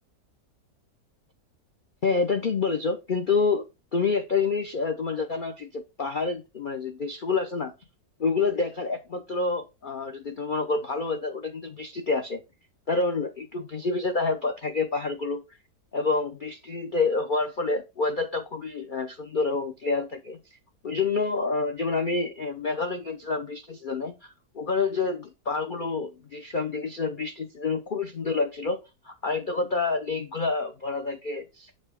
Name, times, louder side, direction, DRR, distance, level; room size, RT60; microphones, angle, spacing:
voice 1, 2.0-3.6 3.9-7.7 8.2-12.4 12.9-15.4 15.9-20.4 20.8-28.8 29.0-31.8, left 4 dB, 65° left, 5 dB, 0.5 m, -28 dB
7.3 x 5.4 x 3.5 m, 0.25 s
omnidirectional pair, 1.9 m